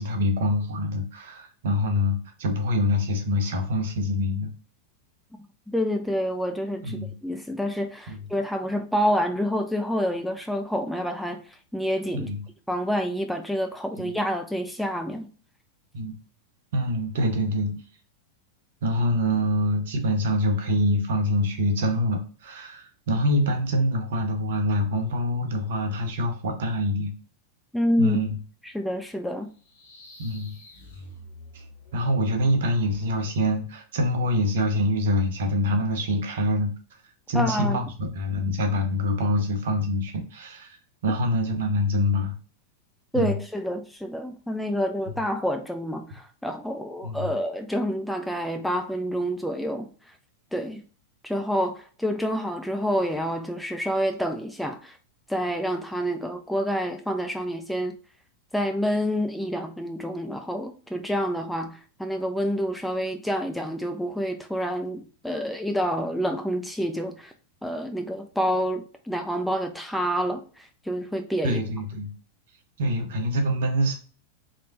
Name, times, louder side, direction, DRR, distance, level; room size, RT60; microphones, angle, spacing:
voice 1, 0.0-4.5 6.8-7.1 8.1-8.2 12.1-12.4 14.0-14.1 15.9-16.1 16.7-17.7 18.8-27.1 28.0-28.3 30.2-30.5 31.5-31.6 31.9-36.7 37.3-40.8 41.0-42.3 43.1-43.4 47.0-47.3 71.4-72.1 72.8-73.9, left 1 dB, 55° right, 1.0 m, -25 dB
voice 2, 5.7-11.4 11.7-12.3 12.7-15.3 27.7-28.2 28.6-29.5 37.3-37.8 43.1-49.9 50.5-50.8 51.2-55.0 55.3-58.0 58.5-67.3 67.6-71.6, equal, ahead, 0.4 m, -28 dB
sound 1, 29.5-32.3, left 1 dB, 65° left, 1.2 m, -47 dB
4.1 x 3.3 x 2.6 m
figure-of-eight pair, 90°, 0 cm